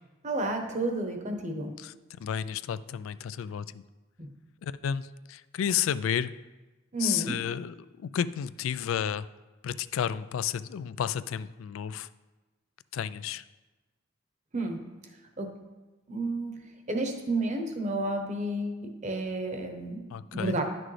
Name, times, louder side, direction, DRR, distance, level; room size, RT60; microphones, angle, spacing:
voice 1, 0.2-1.7 4.2-4.3 6.9-7.4 14.5-14.8 15.4-15.5 16.1-20.0 20.3-20.6, right 2 dB, 35° right, 5 dB, 0.9 m, -31 dB
voice 2, 2.2-3.8 4.6-6.3 7.0-9.3 9.6-12.1 12.9-13.4 20.1-20.6, left 8 dB, 80° left, 16 dB, 0.3 m, -32 dB
11.0 x 6.1 x 3.2 m, 1.2 s
head